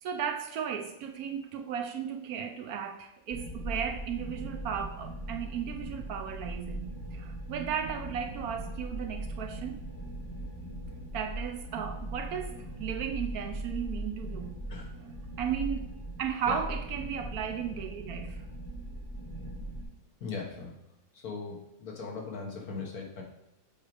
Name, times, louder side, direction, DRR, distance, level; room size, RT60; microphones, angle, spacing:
voice 1, 0.0-9.8 11.1-14.6 15.4-15.9 16.2-18.4, right 8 dB, 70° right, 5 dB, 1.0 m, -35 dB
sound 1, 3.3-19.8, right 1 dB, 15° left, 1.6 m, -39 dB
voice 2, 20.2-20.7 21.1-23.2, left 4 dB, 65° left, -2 dB, 1.6 m, -39 dB
7.3 x 3.1 x 4.9 m, 0.83 s
omnidirectional pair, 1.7 m